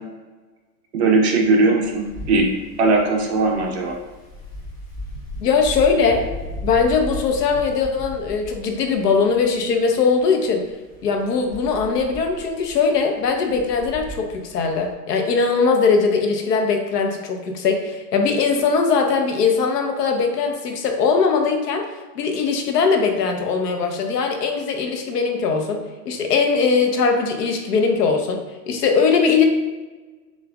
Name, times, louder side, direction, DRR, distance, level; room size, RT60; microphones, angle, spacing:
voice 1, 0.9-2.5 2.8-4.0, right 3 dB, 40° right, 0 dB, 0.6 m, -18 dB
Wind, 1.8-14.9, left 1 dB, 25° left, 0.5 m, -36 dB
voice 2, 5.4-6.2 6.6-10.6 11.0-21.9 22.1-28.4 28.7-29.4, left 5 dB, 70° left, 3 dB, 0.9 m, -20 dB
7.0 x 2.5 x 2.3 m, 1.2 s
hypercardioid pair, 165°, 49 cm